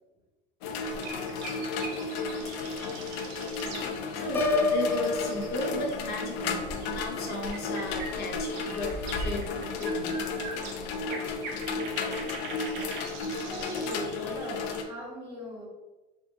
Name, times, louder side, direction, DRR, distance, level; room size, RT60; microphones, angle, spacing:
sound 1, 0.6-14.8, left 3 dB, 75° left, 0.6 m, -33 dB
sound 2, 0.8-6.1 6.4-14.8, right 4 dB, 85° right, 0.7 m, -44 dB
voice 1, 4.1-9.5 9.8-10.2, left 2 dB, 50° left, 0 dB, 0.8 m, -35 dB
Piano, 4.3-6.3, left 2 dB, 10° left, 0.5 m, -28 dB
voice 2, 13.3-15.7, left 1 dB, 25° right, -3 dB, 1.5 m, -39 dB
3.7 x 2.5 x 3.7 m, 1.1 s
supercardioid pair, 125°, 21 cm